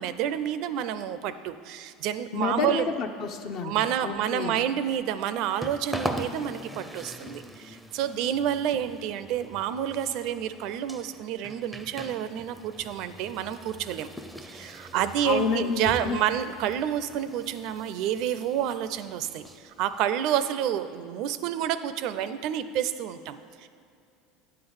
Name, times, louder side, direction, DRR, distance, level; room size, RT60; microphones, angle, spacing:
voice 1, 0.0-2.9 3.6-14.1 14.4-23.8, right 10 dB, 60° right, 12 dB, 0.4 m, -29 dB
voice 2, 2.3-4.6 15.2-16.2, left 5 dB, 55° left, 5 dB, 0.6 m, -30 dB
sound 1, 4.9-20.0, equal, 5° right, 0.5 m, -42 dB
9.4 x 3.8 x 7.0 m, 2.5 s
supercardioid pair, 120°, 0 cm